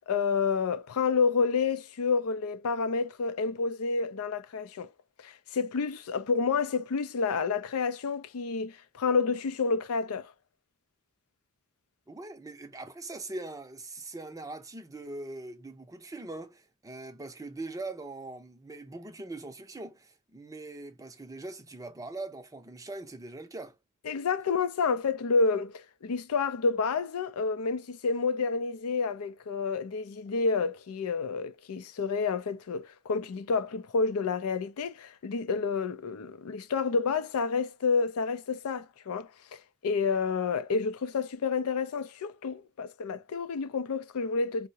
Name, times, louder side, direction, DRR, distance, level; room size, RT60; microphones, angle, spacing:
voice 1, 0.1-4.9 5.2-10.3 24.1-44.7, left 4 dB, 80° left, 0.4 m, -29 dB
voice 2, 12.1-23.8, right 2 dB, 15° right, 0.5 m, -41 dB
4.6 x 2.1 x 2.6 m
head